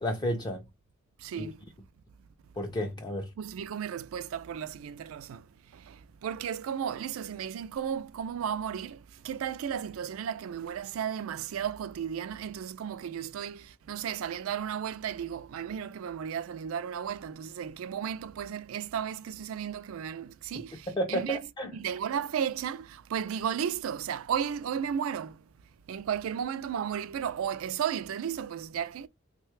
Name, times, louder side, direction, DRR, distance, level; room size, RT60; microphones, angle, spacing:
voice 1, 0.0-0.7 1.4-1.5 2.6-3.3 20.9-21.7, equal, 20° left, 0.4 m, -31 dB
voice 2, 1.2-1.6 3.4-5.4 5.7-6.0 6.2-21.4 21.7-25.4 25.9-29.1, right 8 dB, 85° right, 0.3 m, -34 dB
3.2 x 2.2 x 3.1 m
head